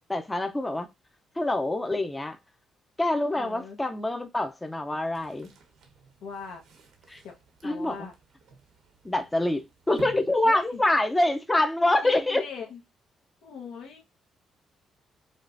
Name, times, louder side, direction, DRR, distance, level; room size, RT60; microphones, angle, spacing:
voice 1, 0.1-0.9 1.4-2.4 3.0-5.5 7.1-7.2 7.6-8.1 9.0-12.4, left 1 dB, 15° left, 0.5 m, -26 dB
voice 2, 3.3-3.8 6.2-6.6 7.2-7.4 7.6-8.1 10.4-10.8 12.0-12.8 13.4-14.0, left 5 dB, 85° left, 1.1 m, -40 dB
sound 1, 5.1-11.3, right 5 dB, 80° right, 1.0 m, -51 dB
5.1 x 2.4 x 2.5 m
cardioid pair, 90°, 0 cm